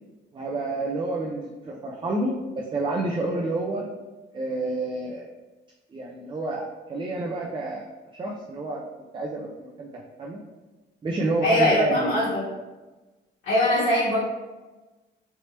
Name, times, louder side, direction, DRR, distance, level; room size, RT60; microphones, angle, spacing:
voice 1, 0.3-2.4 2.7-3.9 4.3-5.3 5.9-7.9 8.2-8.8 9.1-10.4 11.0-12.2, right 2 dB, 25° right, -1 dB, 0.4 m, -29 dB
voice 2, 11.4-12.4 13.4-14.2, left 1 dB, 80° left, -12 dB, 1.4 m, -21 dB
3.3 x 2.8 x 2.9 m, 1.2 s
cardioid pair, 90°, 20 cm